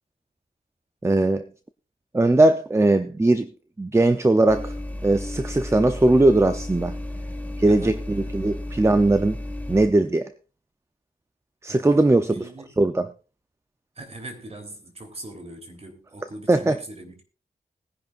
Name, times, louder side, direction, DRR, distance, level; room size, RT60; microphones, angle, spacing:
voice 1, 1.0-1.5 2.1-3.5 3.8-4.8 5.0-6.9 7.6-9.4 9.7-10.3 11.6-12.3 12.8-13.1 16.5-16.8, right 2 dB, 15° right, 0.6 m, -19 dB
sound 1, 4.5-9.9, left 1 dB, 10° left, 1.7 m, -33 dB
voice 2, 7.6-8.3 11.7-12.7 13.9-17.2, right 2 dB, 35° right, 3.4 m, -41 dB
20.5 x 10.5 x 2.5 m
wide cardioid pair, 85°, 17 cm